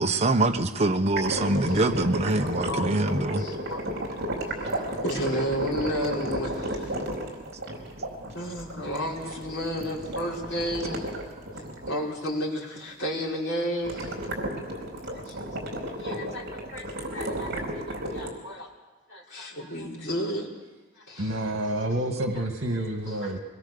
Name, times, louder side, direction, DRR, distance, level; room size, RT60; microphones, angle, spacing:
voice 1, 0.0-3.4, right 2 dB, 30° right, 4 dB, 1.0 m, -24 dB
sound 1, 1.1-11.9 13.8-18.3, right 1 dB, 55° right, 4.4 m, -33 dB
voice 2, 2.3-3.8 4.4-7.0 8.3-11.1 11.9-14.3 15.0-15.4 16.0-18.7 19.1-20.5 20.9-21.4 23.1-23.3, equal, 60° left, -3 dB, 4.8 m, -33 dB
voice 3, 21.2-23.4, right 1 dB, 75° right, 4 dB, 1.9 m, -28 dB
23.0 x 21.0 x 6.8 m, 1.2 s
head